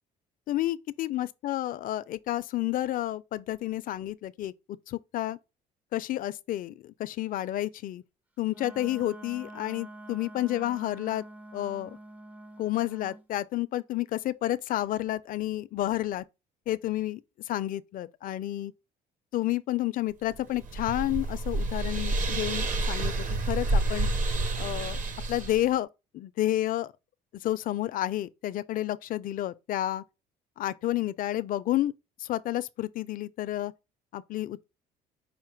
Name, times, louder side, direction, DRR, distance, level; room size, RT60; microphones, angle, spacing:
voice 1, 0.5-4.5 4.9-5.4 5.9-8.0 8.4-11.2 11.5-12.0 12.6-16.2 16.7-17.2 17.5-18.7 19.3-24.1 24.6-25.0 25.3-25.9 26.1-26.9 27.3-30.0 30.6-31.9 32.2-33.7 34.1-34.6, left 14 dB, 55° left, 0.4 m, -30 dB
Wind instrument woodwind instrument, 8.5-13.2, right 1 dB, 10° right, 0.4 m, -46 dB
sound 1, 20.3-25.7, right 2 dB, 50° right, 0.9 m, -29 dB
5.6 x 2.1 x 4.4 m
cardioid pair, 110°, 17 cm